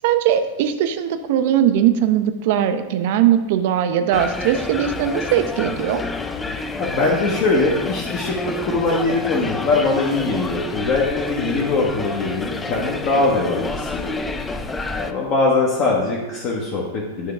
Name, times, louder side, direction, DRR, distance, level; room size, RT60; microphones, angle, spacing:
voice 1, 0.0-6.0, right 10 dB, 50° right, 9 dB, 0.5 m, -19 dB
sound 1, 4.1-15.1, left 3 dB, 15° left, 0.4 m, -29 dB
voice 2, 6.8-14.2 14.9-17.3, left 3 dB, 40° left, -4 dB, 1.0 m, -21 dB
9.1 x 3.8 x 3.6 m, 1.1 s
figure-of-eight pair, 90°, 0 cm